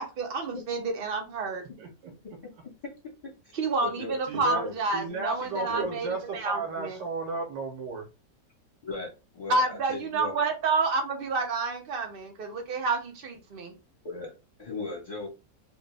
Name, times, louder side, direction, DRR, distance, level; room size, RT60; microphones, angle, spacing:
voice 1, 0.0-1.7 3.5-7.0 9.5-13.7, right 3 dB, 45° right, 0.7 m, -29 dB
voice 2, 1.8-2.1 4.3-4.6 4.9-8.1, right 4 dB, 75° right, 1.6 m, -34 dB
voice 3, 3.2-4.7 5.5-6.0 8.8-10.3 14.0-14.3 14.6-15.3, left 3 dB, 25° left, 1.3 m, -38 dB
3.1 x 3.1 x 3.3 m
omnidirectional pair, 1.9 m